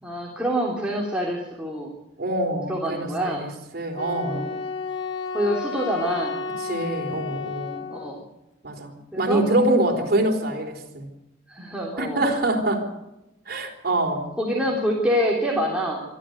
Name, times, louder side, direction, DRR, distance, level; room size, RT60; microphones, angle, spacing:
voice 1, 0.0-1.9 2.7-3.5 4.3-4.5 5.3-6.4 7.9-8.2 9.1-9.4 9.9-10.0 11.5-12.2 14.4-16.0, equal, 5° right, -3 dB, 3.6 m, -26 dB
voice 2, 2.2-3.5 3.7-4.5 6.7-7.8 8.6-11.1 12.0-12.9 13.5-14.3, right 1 dB, 55° right, 4 dB, 4.2 m, -25 dB
Wind instrument woodwind instrument, 4.0-8.2, left 5 dB, 85° left, 1.9 m, -32 dB
25.5 x 12.5 x 8.1 m, 0.94 s
head